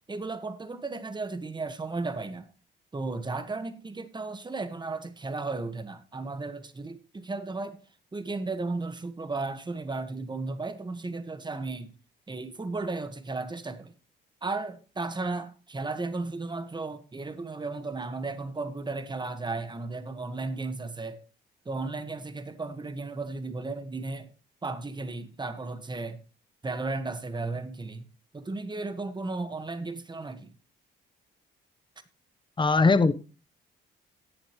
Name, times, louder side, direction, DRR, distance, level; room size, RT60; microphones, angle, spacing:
voice 1, 0.1-2.5 2.9-7.8 8.1-11.9 12.3-13.9 14.4-21.2 21.6-24.3 24.6-26.2 26.6-28.1 28.3-30.5, right 3 dB, 20° right, 1.5 m, -34 dB
voice 2, 32.6-33.1, left 3 dB, 25° left, 0.9 m, -20 dB
17.5 x 7.0 x 3.1 m
cardioid pair, 90°, 20 cm